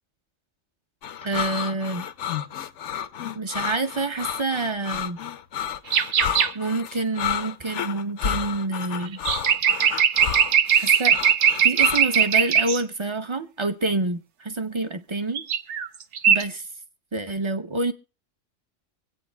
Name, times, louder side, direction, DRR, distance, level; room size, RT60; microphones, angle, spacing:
sound 1, 1.0-12.3, left 9 dB, 70° left, 1.0 m, -31 dB
voice 1, 1.2-2.1 3.3-5.2 6.5-9.2 10.7-11.2 11.6-15.4 16.3-16.7 17.1-17.9, right 2 dB, 30° right, 0.6 m, -27 dB
sound 2, 5.9-6.5 9.1-12.8 15.3-15.9 16.1-16.4, right 8 dB, 70° right, 1.0 m, -20 dB
25.0 x 8.7 x 2.2 m
omnidirectional pair, 1.3 m